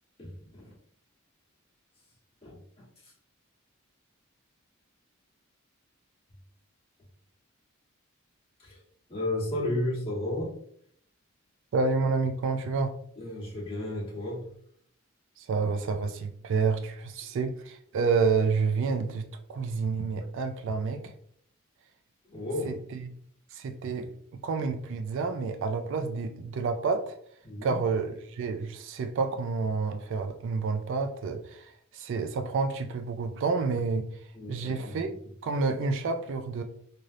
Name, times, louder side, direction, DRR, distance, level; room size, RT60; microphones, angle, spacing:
voice 1, 0.2-0.7 2.4-3.1 8.6-8.8 9.1-10.6 13.2-14.5 22.2-22.8 27.4-27.8 34.3-35.1, left 1 dB, 25° left, -6 dB, 1.2 m, -33 dB
voice 2, 11.7-12.9 15.4-21.1 22.6-23.1 23.5-24.1 24.4-27.2 27.6-34.0 34.5-35.1 35.4-36.6, right 4 dB, 60° right, 7 dB, 0.3 m, -29 dB
3.2 x 2.6 x 2.4 m, 0.64 s
head